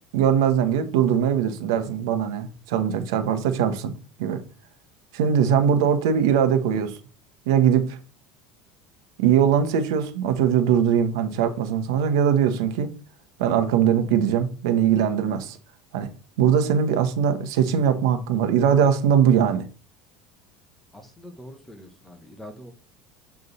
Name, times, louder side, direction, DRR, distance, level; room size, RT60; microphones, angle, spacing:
voice 1, 0.1-3.9 4.2-4.4 5.1-7.0 7.5-8.0 9.2-12.9 13.4-15.6 15.9-16.1 16.4-19.6, right 8 dB, 90° right, 1.1 m, -21 dB
voice 2, 20.9-22.7, equal, 10° left, 1.2 m, -44 dB
7.9 x 3.6 x 4.1 m
cardioid pair, 145°, 2 cm